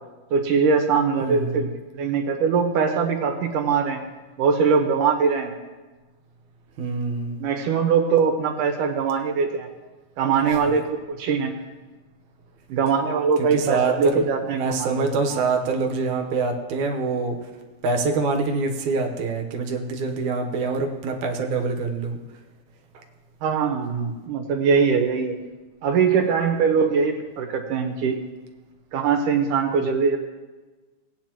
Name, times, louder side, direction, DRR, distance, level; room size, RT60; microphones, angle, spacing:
voice 1, 0.3-4.0 4.4-5.5 7.4-9.7 10.2-11.6 12.7-15.4 23.4-25.4 25.8-28.2 28.9-30.2, right 5 dB, 90° right, 2 dB, 2.8 m, -22 dB
voice 2, 1.2-1.7 6.8-7.4 10.5-10.6 13.4-17.4 17.8-22.2 22.9-23.0, right 4 dB, 70° right, 2 dB, 2.5 m, -25 dB
18.5 x 9.4 x 3.0 m, 1.2 s
omnidirectional pair, 3.6 m